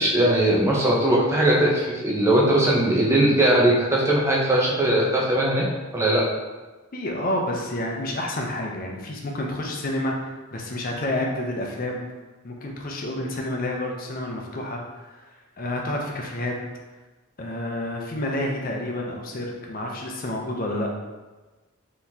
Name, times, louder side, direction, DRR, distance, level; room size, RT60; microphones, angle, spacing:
voice 1, 0.0-5.7 5.9-6.2, right 1 dB, 10° right, -4 dB, 0.6 m, -20 dB
voice 2, 6.9-12.0 12.4-15.1 15.6-16.6 17.4-20.9, left 1 dB, 40° left, 0 dB, 0.5 m, -29 dB
3.9 x 3.0 x 2.7 m, 1.2 s
head